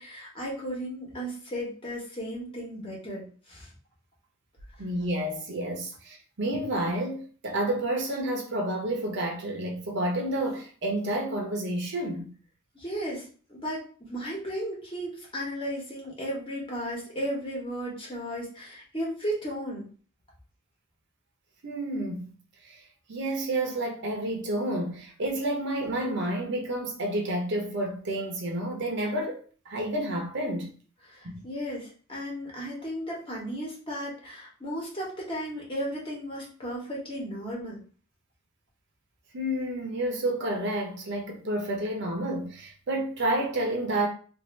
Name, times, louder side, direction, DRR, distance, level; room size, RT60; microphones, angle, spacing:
voice 1, 0.0-3.7 12.7-13.2 13.5-19.9 31.1-37.8, equal, 25° left, 1.1 m, -35 dB
voice 2, 4.8-12.3 21.6-22.3 22.6-22.8 23.1-29.4 29.7-30.7 31.2-31.4 39.3-44.1, right 1 dB, 60° right, 0.8 m, -30 dB
2.6 x 2.5 x 3.1 m
head